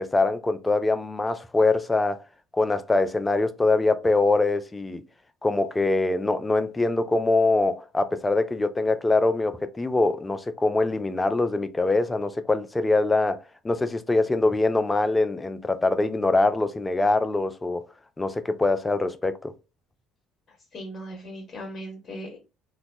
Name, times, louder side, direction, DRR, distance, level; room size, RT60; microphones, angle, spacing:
voice 1, 0.0-2.2 2.5-5.0 5.4-17.8 18.2-19.5, left 2 dB, 20° left, 0.4 m, -23 dB
voice 2, 20.7-22.4, equal, 40° left, 1.0 m, -38 dB
2.9 x 2.2 x 2.6 m
figure-of-eight pair, 55°, 0 cm